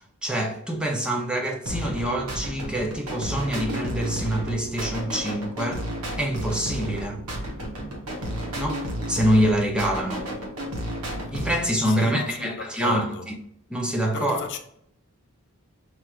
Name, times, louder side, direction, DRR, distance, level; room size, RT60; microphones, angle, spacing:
voice 1, 0.0-5.8 6.2-7.2 8.5-8.8 9.1-10.3 11.3-13.1 13.7-14.4, right 1 dB, 5° right, 0.5 m, -25 dB
sound 1, 1.7-11.7, equal, 85° right, 1.1 m, -32 dB
voice 2, 11.8-13.3 14.1-14.6, left 5 dB, 55° left, 0.5 m, -34 dB
4.5 x 3.1 x 2.4 m
head